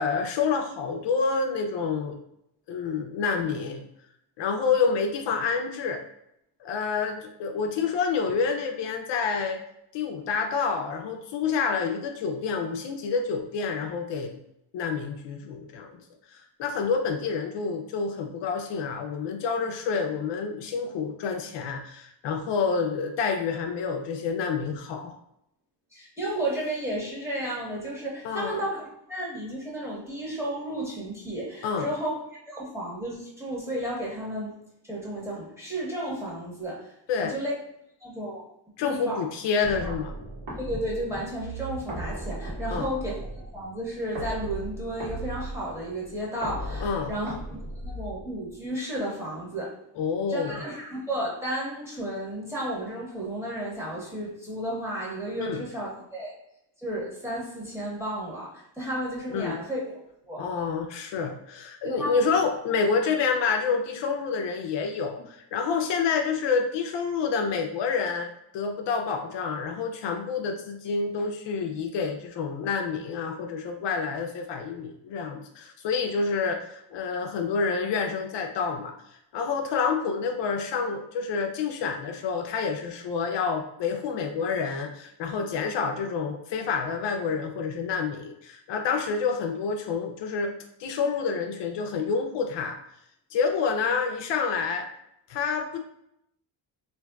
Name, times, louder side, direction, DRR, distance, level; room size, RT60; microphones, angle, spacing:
voice 1, 0.0-2.2 2.7-3.8 4.4-6.0 6.6-9.6 9.9-14.4 14.7-16.0 16.3-25.1 28.2-28.6 31.6-31.9 37.1-37.3 38.8-40.1 42.7-42.9 46.8-47.1 50.0-50.6 55.4-55.6 59.3-59.6 60.4-78.9 79.3-90.5 90.8-92.8 93.3-94.9 95.3-95.8, left 5 dB, 70° left, 4 dB, 0.5 m, -28 dB
voice 2, 25.9-32.1 32.5-34.6 34.8-37.5 38.0-38.4 38.8-39.2 39.8-39.9 40.6-49.8 50.3-56.4 56.8-59.8 60.3-60.4 61.8-62.2, right 1 dB, 5° right, -5 dB, 1.1 m, -33 dB
sound 1, 39.6-48.6, right 1 dB, 75° right, 1.3 m, -37 dB
3.4 x 2.6 x 2.3 m, 0.78 s
cardioid pair, 95°, 44 cm